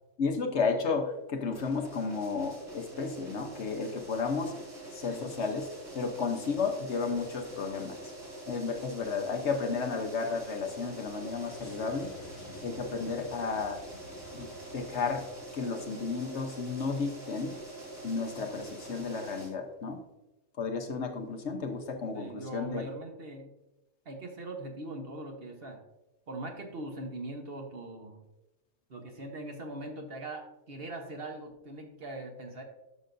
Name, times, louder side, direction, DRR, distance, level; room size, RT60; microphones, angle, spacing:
voice 1, 0.2-4.5 4.9-5.7 5.9-8.0 8.5-12.1 12.6-13.8 14.3-14.5 14.7-15.2 15.5-17.5 18.0-20.0 20.6-22.8, left 4 dB, 60° left, 4 dB, 1.2 m, -32 dB
sound 1, 1.5-19.5, right 1 dB, 90° right, 3.7 m, -45 dB
sound 2, 7.7-15.3, left 2 dB, 75° left, 2.0 m, -53 dB
voice 2, 22.1-23.5 24.0-25.8 26.3-28.2 28.9-32.6, right 2 dB, 50° right, 3 dB, 1.2 m, -41 dB
12.0 x 6.4 x 2.6 m, 0.98 s
omnidirectional pair, 1.4 m